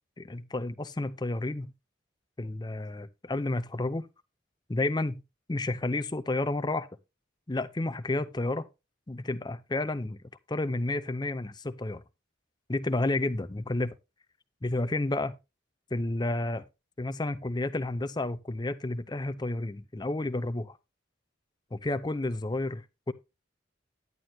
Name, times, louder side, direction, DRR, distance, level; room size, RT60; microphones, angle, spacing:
voice 1, 0.2-1.7 2.4-4.1 4.7-5.1 5.5-6.9 7.5-8.7 9.1-10.2 10.5-12.0 12.7-14.0 14.6-15.4 15.9-16.6 17.0-20.8 21.7-23.1, left 2 dB, 20° left, 0.6 m, -31 dB
11.0 x 9.5 x 2.8 m
head